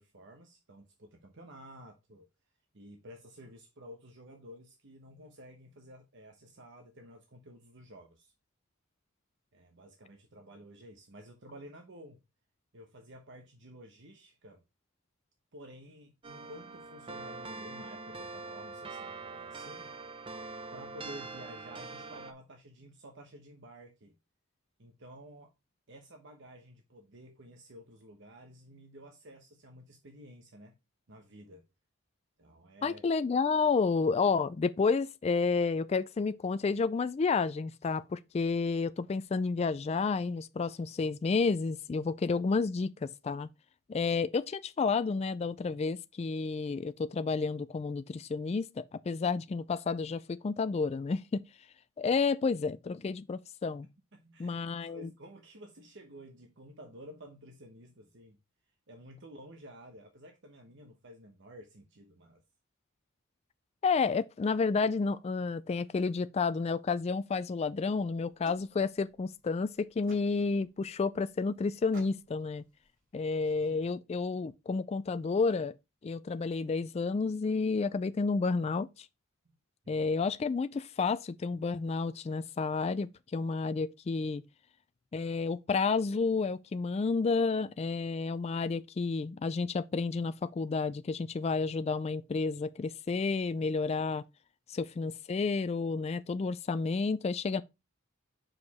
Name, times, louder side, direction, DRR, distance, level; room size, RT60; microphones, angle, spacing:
voice 1, 0.0-2.3 2.7-8.3 9.5-12.2 12.7-14.6 15.5-19.9 20.7-24.1 24.8-25.5 25.9-30.8 31.1-31.6 32.4-33.0 54.1-58.4 58.9-62.4 79.8-80.1, equal, 60° right, 1.0 m, -52 dB
sound 1, 16.2-22.3, right 3 dB, 25° right, 0.5 m, -43 dB
voice 2, 32.8-43.5 43.9-51.4 52.0-53.9 54.4-55.1 63.8-72.6 73.1-75.7 76.0-79.1 79.9-84.4 85.1-94.2 94.7-97.6, left 4 dB, 30° left, 0.3 m, -30 dB
sound 2, 67.9-73.9, right 1 dB, 45° right, 3.4 m, -58 dB
6.3 x 4.9 x 4.1 m
head